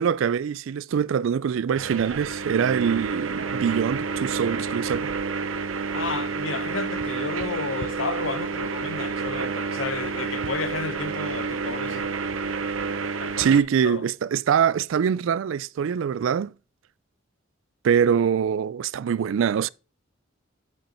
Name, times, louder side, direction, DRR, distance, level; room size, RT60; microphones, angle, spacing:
voice 1, 0.0-5.1 13.4-16.5 17.8-19.7, right 7 dB, 70° right, 0.3 m, -23 dB
sound 1, 1.7-13.6, right 4 dB, 90° right, 0.8 m, -29 dB
voice 2, 5.9-12.1 13.2-13.5 13.8-14.0, left 4 dB, 75° left, 0.8 m, -32 dB
8.8 x 5.3 x 4.3 m
head